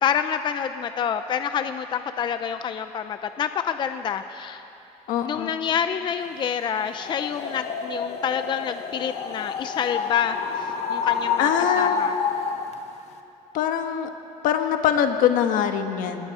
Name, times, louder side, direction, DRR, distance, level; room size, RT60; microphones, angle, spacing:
voice 1, 0.0-4.6 5.2-11.5 11.8-12.1, left 8 dB, 35° left, 9 dB, 0.5 m, -27 dB
voice 2, 5.1-5.5 11.4-12.0 13.5-14.1 14.4-16.3, left 9 dB, 80° left, 6 dB, 1.5 m, -23 dB
sound 1, 7.0-12.7, left 6 dB, 55° left, 1.4 m, -28 dB
27.0 x 20.0 x 4.9 m, 2.8 s
cardioid pair, 175°, 14 cm